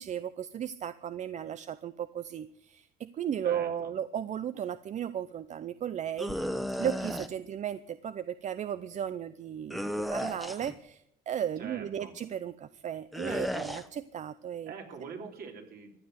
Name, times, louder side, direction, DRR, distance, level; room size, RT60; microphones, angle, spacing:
voice 1, 0.0-6.4 6.8-14.7 15.2-15.3, right 9 dB, 45° right, 14 dB, 0.6 m, -35 dB
voice 2, 3.4-3.9 11.6-12.1 14.7-16.0, right 6 dB, 60° right, 3 dB, 3.5 m, -44 dB
sound 1, 6.2-7.3 9.7-10.7 13.1-13.8, equal, ahead, 1.1 m, -34 dB
15.0 x 10.0 x 8.0 m, 0.73 s
cardioid pair, 105°, 17 cm